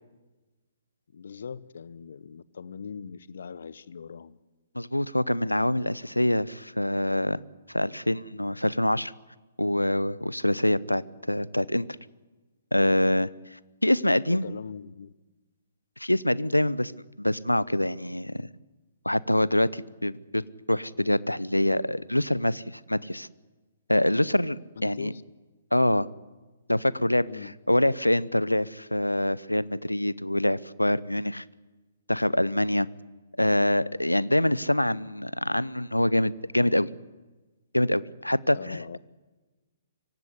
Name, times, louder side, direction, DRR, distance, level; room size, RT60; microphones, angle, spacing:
voice 1, 1.1-4.4 14.3-15.1 24.8-25.2 27.3-27.5 38.5-39.0, left 6 dB, 60° left, 0.9 m, -40 dB
voice 2, 4.7-7.4 7.7-9.1 9.6-11.9 12.7-14.4 16.0-16.9 17.2-18.5 19.0-23.3 23.9-25.1 25.7-26.1 26.7-27.3 27.7-31.4 32.1-32.9 33.4-36.9 37.7-39.0, left 1 dB, 90° left, 0.7 m, -25 dB
24.5 x 16.0 x 9.8 m
figure-of-eight pair, 125°, 0 cm